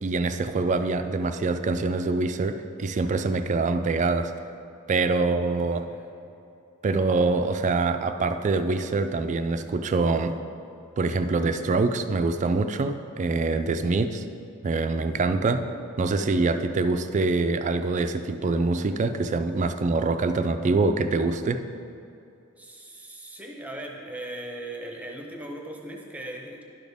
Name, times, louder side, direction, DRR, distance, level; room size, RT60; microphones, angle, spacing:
voice 1, 0.0-4.3 4.9-5.9 6.8-10.3 11.0-14.2 14.6-15.7 16.0-21.6, right 3 dB, 35° right, 9 dB, 0.3 m, -25 dB
voice 2, 5.6-6.3 22.6-26.7, right 1 dB, 5° right, 0 dB, 0.8 m, -39 dB
11.0 x 6.3 x 3.5 m, 2.7 s
head